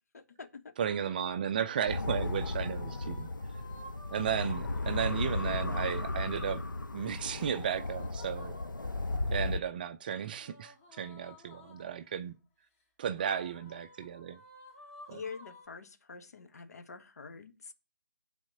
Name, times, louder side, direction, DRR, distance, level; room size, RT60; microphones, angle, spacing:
voice 1, 0.1-0.7 4.4-4.5 15.1-17.7, left 5 dB, 55° left, 1.5 m, -46 dB
sound 1, 0.8-1.5 2.1-6.3 7.7-9.2 10.3-12.0 13.1-15.7, left 1 dB, 20° left, 3.5 m, -54 dB
voice 2, 0.8-3.3 4.1-6.6 6.9-8.6 9.3-12.3 13.0-14.4 15.1-15.2, right 8 dB, 25° right, 0.5 m, -34 dB
sound 2, 1.9-9.6, left 2 dB, 80° left, 1.0 m, -35 dB
8.9 x 4.2 x 7.2 m
figure-of-eight pair, 150°, 11 cm